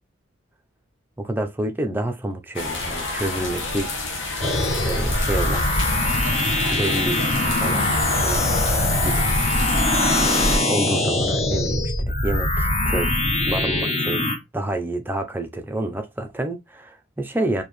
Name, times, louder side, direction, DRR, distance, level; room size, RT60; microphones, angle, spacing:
voice 1, 1.2-3.9 4.8-5.7 6.7-7.2 7.6-8.7 9.0-9.3 10.7-13.2 13.5-14.2 14.5-17.6, right 1 dB, 10° right, 0.5 m, -28 dB
sound 1, 2.5-10.6, left 2 dB, 60° left, 1.2 m, -27 dB
sound 2, 4.4-14.4, left 1 dB, 30° left, 0.8 m, -22 dB
4.4 x 2.8 x 3.1 m
head